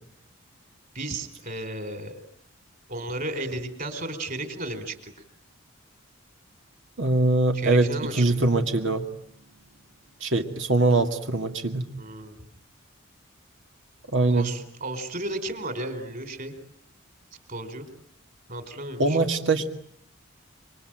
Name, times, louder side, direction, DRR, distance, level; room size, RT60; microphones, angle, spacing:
voice 1, 0.9-2.1 2.9-5.1 7.5-8.4 12.0-12.4 14.3-16.5 17.5-17.9 18.5-19.2, right 2 dB, 45° right, 8 dB, 4.5 m, -34 dB
voice 2, 7.0-9.1 10.2-11.8 14.1-14.5 19.0-19.8, right 2 dB, 65° right, 5 dB, 2.1 m, -22 dB
Drum, 8.4-10.6, right 1 dB, 80° right, 2.6 m, -40 dB
27.0 x 24.5 x 9.1 m, 0.67 s
head